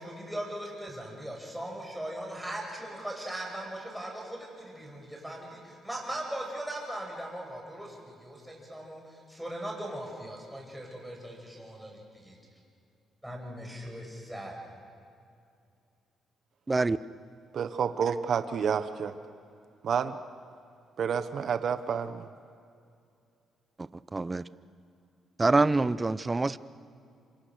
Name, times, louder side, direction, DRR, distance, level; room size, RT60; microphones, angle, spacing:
voice 1, 0.0-12.4 13.2-14.6, right 1 dB, 5° right, -1 dB, 8.0 m, -39 dB
voice 2, 16.7-17.0 24.1-24.4 25.4-26.6, right 3 dB, 20° right, 16 dB, 0.7 m, -25 dB
voice 3, 17.5-19.1 19.8-20.2 21.0-22.3, right 7 dB, 60° right, 10 dB, 1.1 m, -29 dB
26.5 x 26.0 x 6.6 m, 2.4 s
cardioid pair, 90°, 0 cm